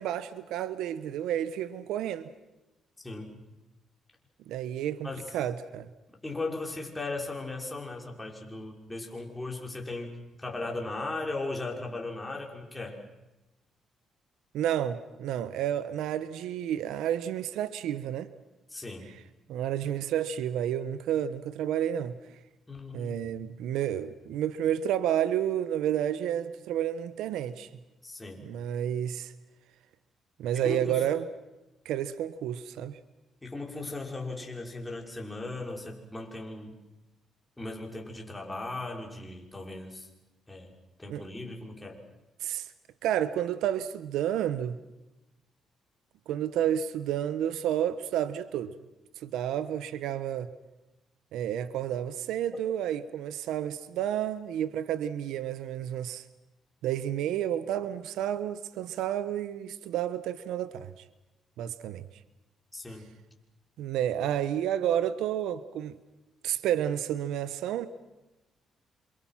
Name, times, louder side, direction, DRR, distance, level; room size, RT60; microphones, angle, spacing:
voice 1, 0.0-2.3 4.5-5.9 14.5-18.3 19.5-22.2 22.9-27.7 28.4-29.3 30.4-31.3 31.8-33.0 41.1-41.2 42.4-42.7 43.0-44.8 46.3-48.7 49.2-50.5 51.3-56.2 56.8-60.9 61.6-62.0 63.8-65.9 66.4-67.9, right 10 dB, 85° right, 1.2 m, -30 dB
voice 2, 3.0-3.4 5.0-5.3 6.2-10.1 10.4-13.0 18.7-19.1 22.7-23.2 28.0-28.4 30.5-31.0 33.4-36.7 37.6-40.1 40.5-40.7 41.0-42.0 62.7-63.1, left 2 dB, 15° left, 5.9 m, -37 dB
28.5 x 27.0 x 5.9 m
cardioid pair, 90°, 0 cm